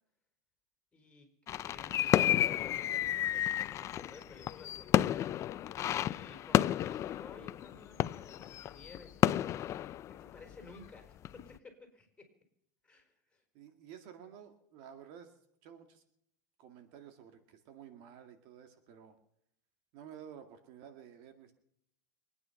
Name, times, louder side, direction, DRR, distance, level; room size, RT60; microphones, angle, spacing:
voice 1, 0.9-1.3 1.6-5.3 5.8-9.6 10.1-12.3 12.8-13.4, left 3 dB, 10° left, 5 dB, 4.6 m, -55 dB
sound 1, 1.5-10.9 11.2-11.5, left 12 dB, 35° left, 0.5 m, -31 dB
voice 2, 13.5-16.0 16.6-19.2 19.9-21.5, right 9 dB, 55° right, 7 dB, 2.1 m, -52 dB
24.5 x 9.6 x 5.9 m, 0.74 s
supercardioid pair, 120°, 9 cm